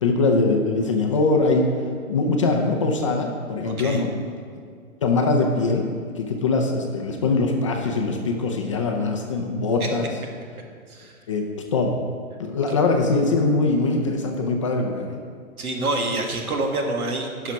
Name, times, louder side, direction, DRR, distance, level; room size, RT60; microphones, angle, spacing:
voice 1, 0.0-1.7 2.1-4.1 5.0-5.9 6.2-10.1 11.3-11.4 11.7-12.0 12.4-15.2, left 3 dB, 25° left, 2 dB, 0.5 m, -22 dB
voice 2, 3.6-4.1 9.8-9.9 10.9-11.1 15.6-17.5, right 2 dB, 80° right, 2 dB, 1.8 m, -27 dB
10.5 x 5.8 x 5.1 m, 2.1 s
hypercardioid pair, 150°, 43 cm